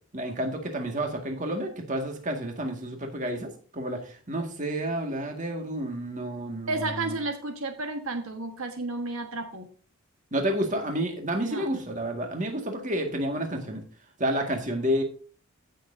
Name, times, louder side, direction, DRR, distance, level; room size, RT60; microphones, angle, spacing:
voice 1, 0.1-7.1 10.3-13.8 14.2-15.0, right 1 dB, 35° right, 3 dB, 1.9 m, -30 dB
voice 2, 6.7-9.7 11.5-11.8, right 2 dB, 70° right, 5 dB, 1.4 m, -32 dB
16.0 x 6.7 x 2.7 m, 0.40 s
head